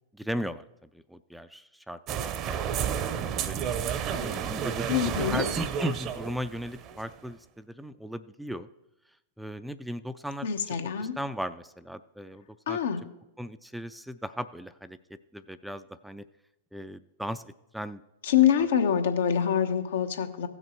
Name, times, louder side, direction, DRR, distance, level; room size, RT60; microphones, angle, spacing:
voice 1, 0.1-0.6 0.9-3.0 3.3-3.8 4.2-8.7 9.4-12.8 13.4-15.0 15.3-16.2 16.7-17.4 17.7-18.0, equal, ahead, 12 dB, 0.4 m, -37 dB
sound 1, 2.1-7.2, right 8 dB, 40° right, 0.7 m, -31 dB
voice 2, 4.9-5.5 10.4-11.2 12.7-13.1 18.2-20.5, left 8 dB, 75° left, 6 dB, 1.1 m, -25 dB
15.5 x 6.3 x 4.5 m, 0.90 s
hypercardioid pair, 100°, 0 cm